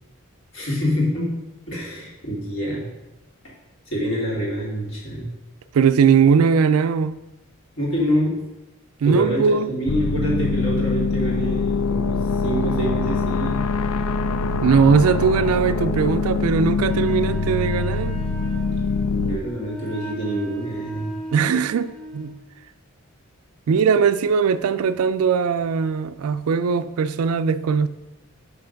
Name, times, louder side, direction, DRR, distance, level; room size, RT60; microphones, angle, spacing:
voice 1, 0.5-1.3 1.7-2.9 3.9-5.3 7.8-8.4 9.0-13.6 19.1-21.2, equal, 60° left, 2.2 m, -26 dB
voice 2, 5.7-7.2 9.0-9.7 14.6-18.2 21.3-22.3 23.7-27.9, right 6 dB, 80° right, 0.4 m, -19 dB
sound 1, 9.9-19.4, left 4 dB, 85° left, 0.4 m, -23 dB
Wind instrument woodwind instrument, 16.8-22.4, right 2 dB, ahead, 0.7 m, -38 dB
5.8 x 5.7 x 5.1 m
head